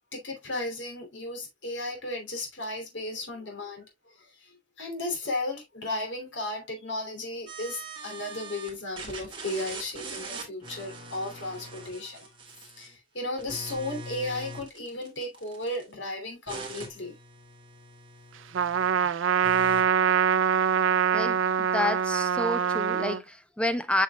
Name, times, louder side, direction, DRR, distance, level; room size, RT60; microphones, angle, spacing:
voice 1, 0.1-17.1 18.9-19.1, left 2 dB, 70° left, 2.9 m, -35 dB
sound 1, 7.5-8.7 9.0-13.0 13.4-15.8 16.5-18.9 19.4-19.8, right 2 dB, 25° right, 2.2 m, -42 dB
Trumpet, 18.5-23.2, right 7 dB, 80° right, 0.4 m, -24 dB
voice 2, 21.1-24.0, left 1 dB, 5° left, 0.5 m, -29 dB
7.8 x 6.4 x 2.3 m
head